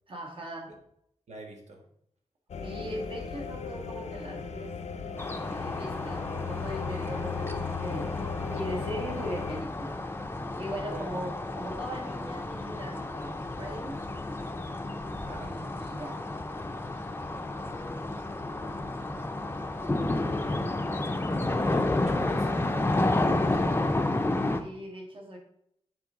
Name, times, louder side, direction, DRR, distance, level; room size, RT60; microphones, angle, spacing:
voice 1, 0.1-0.7 2.6-4.8 5.5-8.2 8.5-10.0 10.6-14.0 14.3-14.4 15.3-16.2 24.6-25.4, equal, 50° right, -1 dB, 2.1 m, -39 dB
voice 2, 1.3-1.9 10.9-11.1 15.2-15.6 18.3-18.8 20.1-20.7 21.6-23.9, right 2 dB, 80° right, 1 dB, 1.6 m, -47 dB
sound 1, 2.5-9.6, left 6 dB, 80° left, 0.6 m, -37 dB
sound 2, 5.2-24.6, left 2 dB, 20° left, 0.6 m, -31 dB
8.8 x 4.0 x 3.8 m, 0.72 s
wide cardioid pair, 80°, 11 cm